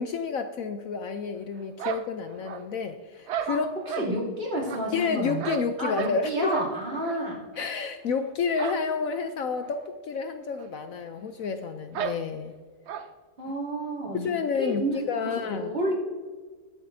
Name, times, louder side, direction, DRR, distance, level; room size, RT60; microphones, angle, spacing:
voice 1, 0.0-3.7 4.0-4.1 4.9-6.5 7.6-12.5 14.1-15.7, left 5 dB, 70° left, 8 dB, 0.8 m, -30 dB
sound 1, 1.8-2.8 3.3-4.1 4.7-6.2 6.5-6.7 7.0-7.2 7.5-7.7 8.6-8.9 9.1-9.2 9.6-9.7 10.5-10.7 10.9-11.0 11.9-12.2 12.9-13.1, right 8 dB, 75° right, 0.6 m, -34 dB
voice 2, 3.9-5.4 5.8-7.4 13.4-14.3 14.6-15.9, right 1 dB, 35° right, -5 dB, 3.0 m, -30 dB
21.0 x 7.4 x 2.7 m, 1.4 s
omnidirectional pair, 1.9 m